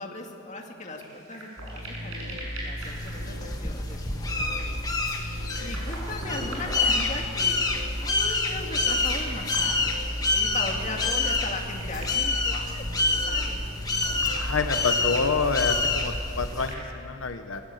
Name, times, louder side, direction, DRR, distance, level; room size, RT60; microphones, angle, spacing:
voice 1, 0.0-9.9 10.3-13.6 14.1-14.2, left 2 dB, 35° left, 1 dB, 2.4 m, -38 dB
sound 1, 0.9-16.8, right 1 dB, 80° right, 7.6 m, -44 dB
sound 2, 1.6-16.0, equal, 45° right, 6.0 m, -36 dB
sound 3, 2.8-16.7, left 3 dB, 20° left, 1.6 m, -28 dB
voice 2, 14.4-17.6, left 4 dB, 80° left, 7 dB, 1.0 m, -28 dB
21.0 x 19.5 x 7.9 m, 2.6 s
head